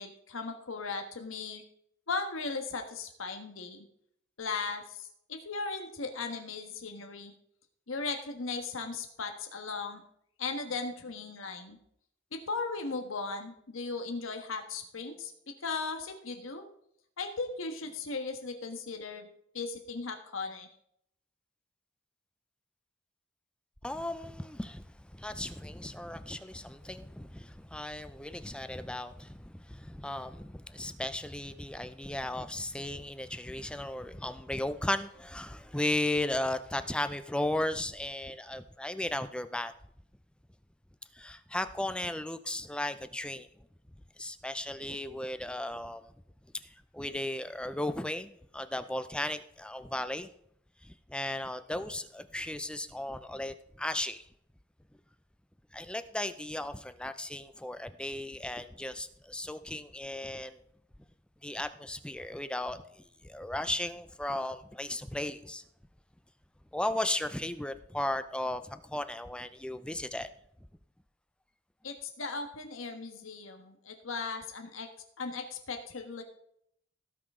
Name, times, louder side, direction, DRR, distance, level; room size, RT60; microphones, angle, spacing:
voice 1, 0.0-1.6 2.1-3.8 4.4-7.3 7.9-10.0 10.4-11.8 12.3-15.3 15.6-16.6 17.2-19.3 19.5-20.7 71.8-74.9 75.2-76.2, left 4 dB, 85° left, 1.4 m, -37 dB
voice 2, 23.8-39.7 41.1-43.5 44.2-46.1 46.6-50.3 50.8-54.3 55.7-60.6 61.4-65.6 66.7-70.3, left 1 dB, 5° left, 0.5 m, -36 dB
17.5 x 5.8 x 3.7 m
head